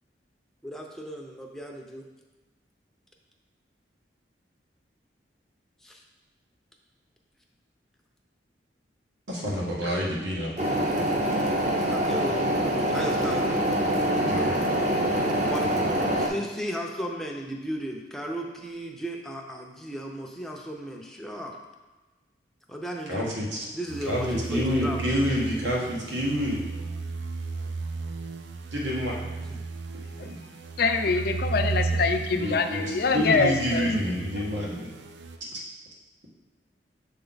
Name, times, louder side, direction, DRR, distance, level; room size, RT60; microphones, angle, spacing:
voice 1, 0.6-2.1 5.8-6.0 11.9-12.6 12.9-13.5 15.4-15.7 16.2-21.6 22.7-23.3 23.7-25.0 29.4-29.6, equal, ahead, 0 dB, 0.5 m, -35 dB
voice 2, 9.3-10.5 14.1-15.0 23.1-23.7 24.0-26.6 28.7-29.1 30.3-30.4 32.3-34.9, equal, 85° right, -4 dB, 1.5 m, -28 dB
sound 1, 10.6-16.3, right 1 dB, 40° right, 0.7 m, -25 dB
sound 2, 23.9-35.4, right 3 dB, 70° right, 0.4 m, -34 dB
voice 3, 30.8-34.0 34.3-34.4, left 4 dB, 55° left, 7 dB, 0.4 m, -25 dB
7.0 x 3.4 x 3.9 m, 1.2 s
head